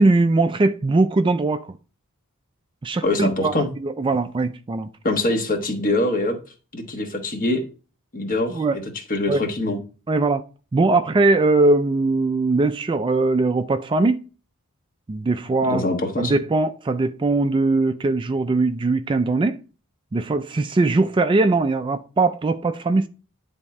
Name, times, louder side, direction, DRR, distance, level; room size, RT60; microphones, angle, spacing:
voice 1, 0.0-1.8 2.8-4.9 8.5-8.8 9.3-9.4 10.1-10.4 10.7-14.2 15.1-15.9 16.2-19.6 20.1-23.1, right 3 dB, 20° right, 0.3 m, -20 dB
voice 2, 3.0-3.7 5.0-6.4 6.7-7.6 8.1-8.8 9.1-9.8 15.6-16.3, left 2 dB, 40° left, 1.3 m, -23 dB
9.9 x 3.6 x 4.2 m
head